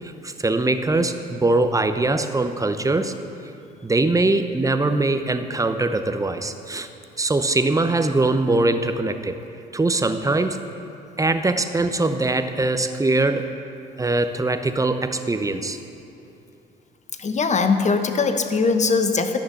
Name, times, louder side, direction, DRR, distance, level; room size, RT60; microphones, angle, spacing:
voice 1, 0.0-3.1 3.8-6.9 7.2-9.4 9.7-10.6 11.2-13.5 14.0-15.8, right 2 dB, 15° right, 8 dB, 0.9 m, -22 dB
voice 2, 17.2-19.4, left 4 dB, 35° left, 8 dB, 1.1 m, -21 dB
13.0 x 6.4 x 8.2 m, 2.7 s
hypercardioid pair, 60°, 21 cm